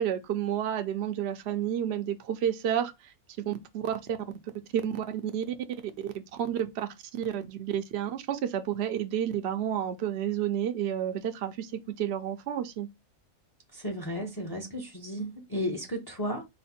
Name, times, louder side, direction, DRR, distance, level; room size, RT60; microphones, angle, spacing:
voice 1, 0.0-3.1 3.5-4.0 4.8-5.0 5.3-5.4 6.0-6.1 6.5-6.9 7.2-11.7 12.0-12.9, right 10 dB, 60° right, 0.7 m, -30 dB
voice 2, 13.7-16.4, equal, 20° left, 0.6 m, -34 dB
4.2 x 2.1 x 4.2 m
omnidirectional pair, 1.5 m